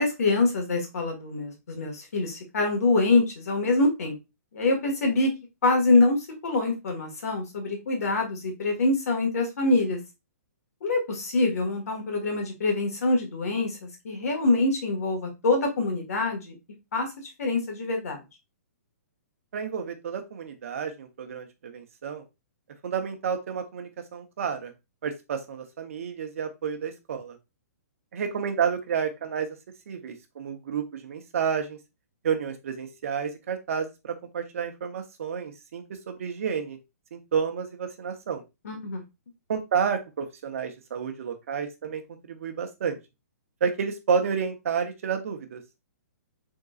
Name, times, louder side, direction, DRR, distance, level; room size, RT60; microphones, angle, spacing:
voice 1, 0.0-4.1 4.5-5.3 5.6-10.0 10.8-16.5 16.9-17.1 17.4-18.2 38.6-39.0, left 2 dB, 65° left, 2 dB, 1.7 m, -25 dB
voice 2, 19.5-22.2 22.8-24.7 25.0-27.4 28.1-29.5 29.9-31.8 32.2-36.8 37.1-38.4 39.5-42.0 42.3-43.0 43.6-45.6, right 6 dB, 55° right, 6 dB, 0.8 m, -30 dB
3.9 x 3.7 x 2.4 m, 0.24 s
hypercardioid pair, 165°, 9 cm